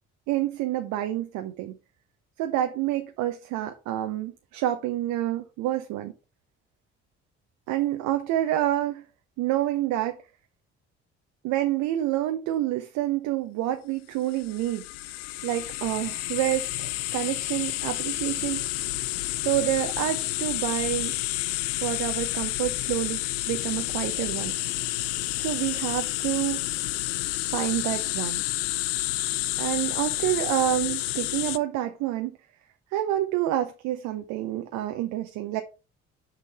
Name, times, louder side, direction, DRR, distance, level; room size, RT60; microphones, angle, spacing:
voice 1, 0.3-1.8 2.4-6.1 7.7-9.0 9.4-10.2 11.4-14.9 15.4-18.6 19.4-21.1 21.8-23.2 23.5-24.5 25.4-26.6 27.5-28.4 29.6-32.4 32.9-35.6, right 13 dB, 60° right, 0.9 m, -28 dB
sound 1, 14.3-31.6, left 19 dB, 70° left, 0.5 m, -30 dB
6.5 x 6.1 x 4.3 m
figure-of-eight pair, 45°, 34 cm